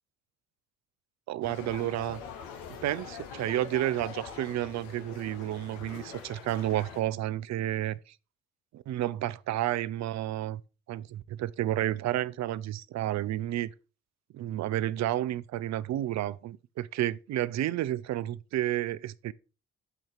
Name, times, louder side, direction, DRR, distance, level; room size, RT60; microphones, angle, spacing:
voice 1, 1.3-2.2 2.7-8.1 8.7-10.6 10.9-13.7 14.3-19.3, right 13 dB, 50° right, 0.5 m, -31 dB
sound 1, 1.4-7.0, left 7 dB, 80° left, 1.0 m, -44 dB
8.1 x 2.8 x 4.5 m
hypercardioid pair, 55°, 35 cm